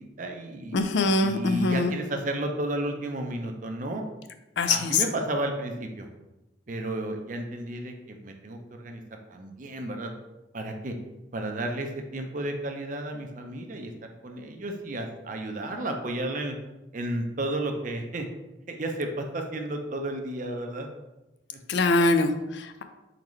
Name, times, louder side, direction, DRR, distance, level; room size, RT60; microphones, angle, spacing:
voice 1, 0.0-0.8 1.2-4.0 4.7-6.1 6.7-9.0 9.3-10.1 10.5-11.0 11.3-13.9 14.2-16.6 16.9-18.3 18.7-20.9 21.5-21.6, right 1 dB, 40° right, 4 dB, 0.6 m, -32 dB
voice 2, 0.7-1.9 4.6-5.0 21.7-22.8, left 3 dB, 65° left, 8 dB, 0.4 m, -23 dB
4.4 x 3.9 x 3.1 m, 0.99 s
head